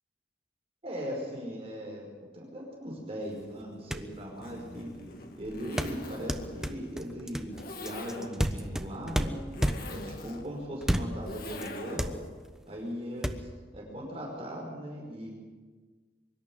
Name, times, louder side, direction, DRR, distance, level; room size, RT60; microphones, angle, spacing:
voice 1, 0.8-2.0 2.3-4.9 5.4-9.4 9.9-12.2 12.7-13.5 13.7-15.3, equal, 35° right, -2 dB, 5.2 m, -39 dB
sound 1, 3.6-3.7 3.9-4.2 5.8-10.1 10.8-11.3 11.6-11.7 12.0-12.6 13.2-13.3, equal, 5° right, 1.0 m, -31 dB
Zipper (clothing), 4.3-12.2, left 2 dB, 60° left, 2.2 m, -44 dB
24.0 x 12.0 x 9.5 m, 1.4 s
head